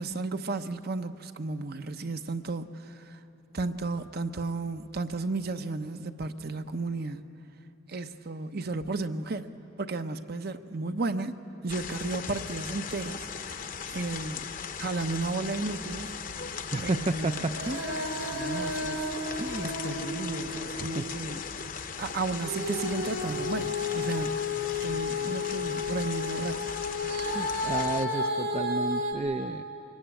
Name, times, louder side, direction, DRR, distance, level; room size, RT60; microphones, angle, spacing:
voice 1, 0.0-3.2 3.5-7.2 7.9-9.5 9.8-11.3 11.6-13.3 13.9-16.1 16.8-17.4 18.3-19.1 19.6-21.4 22.0-24.5 24.7-26.8, right 3 dB, 50° right, 9 dB, 0.9 m, -33 dB
sound 1, 11.7-28.1, left 6 dB, 45° left, 0.8 m, -38 dB
voice 2, 16.7-17.9 19.4-19.7 20.5-21.1 27.2-29.6, right 3 dB, 30° right, 7 dB, 0.5 m, -32 dB
Female singing, 17.5-21.2 22.4-29.1, left 3 dB, 70° right, 4.9 m, -32 dB
24.5 x 23.0 x 8.9 m, 2.9 s
head